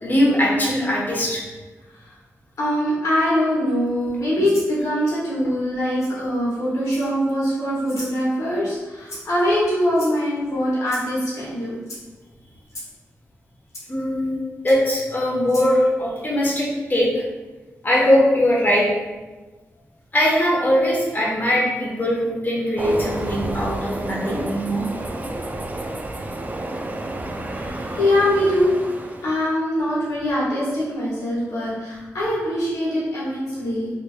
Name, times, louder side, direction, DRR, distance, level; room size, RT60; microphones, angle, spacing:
voice 1, 0.0-1.4 13.9-14.4 14.6-17.1 17.8-18.8 20.1-24.8, equal, 35° left, -4 dB, 1.1 m, -20 dB
voice 2, 2.6-11.7 14.9-15.0 15.7-15.9 28.0-28.7 29.2-33.9, equal, 80° left, -9 dB, 1.3 m, -22 dB
Rattle (instrument), 4.4-4.7 6.0-6.1 6.8-7.3 7.9-8.2 9.1-9.4 9.9-10.4 10.9-11.1 11.8-12.0 12.7-12.9 13.7-13.8 14.7-14.8 15.4-15.7, left 1 dB, 65° left, 0.8 m, -37 dB
Train, 22.8-29.5, right 1 dB, 30° right, 0.4 m, -30 dB
3.2 x 2.8 x 2.3 m, 1.2 s
cardioid pair, 50°, 6 cm